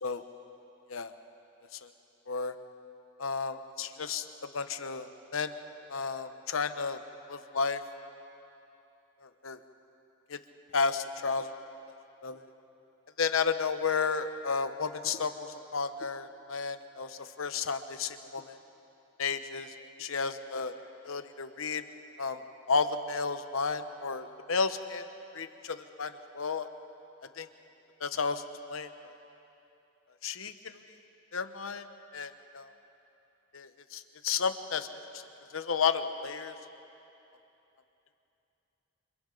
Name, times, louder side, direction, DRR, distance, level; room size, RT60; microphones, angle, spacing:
voice 1, 3.2-4.3 4.5-5.5 5.9-7.0 7.3-7.8 9.4-9.6 10.3-10.4 10.7-11.5 12.2-12.4 13.2-18.6 19.2-19.7 20.0-20.7 21.0-21.8 22.2-22.4 22.7-25.0 25.3-26.7 27.4-27.5 28.0-28.4 28.7-28.9 30.2-30.8 31.3-31.8 32.1-32.7 33.5-34.9 35.5-36.5, left 5 dB, 90° left, 9 dB, 0.9 m, -32 dB
28.0 x 25.5 x 3.9 m, 2.9 s
head